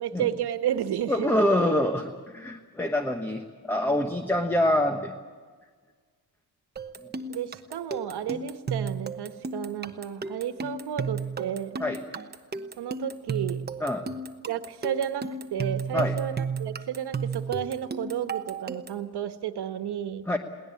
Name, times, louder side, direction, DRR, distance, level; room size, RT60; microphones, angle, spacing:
voice 1, 0.0-1.4 7.3-11.8 12.8-13.6 14.5-20.4, right 10 dB, 85° right, 9 dB, 1.5 m, -32 dB
voice 2, 1.1-5.1 11.8-12.0 13.8-14.0 15.9-16.1 20.3-20.4, left 1 dB, 5° left, 5 dB, 1.2 m, -25 dB
sound 1, 6.8-19.1, right 4 dB, 25° right, 1.0 m, -34 dB
22.0 x 18.0 x 8.6 m, 1.5 s
wide cardioid pair, 155°, 38 cm